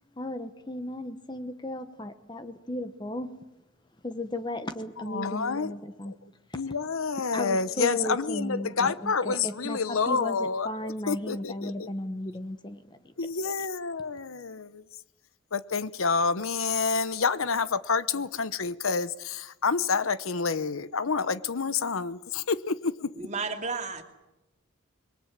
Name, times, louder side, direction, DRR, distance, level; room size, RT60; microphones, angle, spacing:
voice 1, 0.2-3.3 4.0-6.1 6.5-6.6 7.3-9.8 10.1-13.4, left 1 dB, 20° left, 1.0 m, -35 dB
voice 2, 5.0-5.8 6.1-6.2 6.5-11.9 13.2-14.8 15.5-23.1, left 5 dB, 80° left, 0.9 m, -28 dB
voice 3, 23.2-24.0, right 4 dB, 35° right, 2.5 m, -32 dB
26.5 x 22.0 x 7.4 m
head